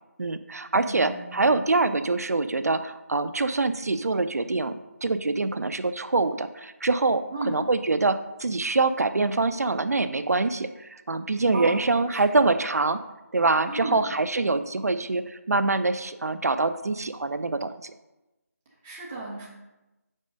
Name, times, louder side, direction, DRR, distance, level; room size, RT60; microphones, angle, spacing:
voice 1, 0.2-13.0 13.3-17.9, right 3 dB, 70° right, 11 dB, 0.5 m, -25 dB
voice 2, 0.7-1.6 7.3-7.5 11.5-12.4 13.7-14.1 18.8-19.5, right 2 dB, 5° right, -6 dB, 0.3 m, -35 dB
5.4 x 4.4 x 5.2 m, 1.0 s
figure-of-eight pair, 165°, 9 cm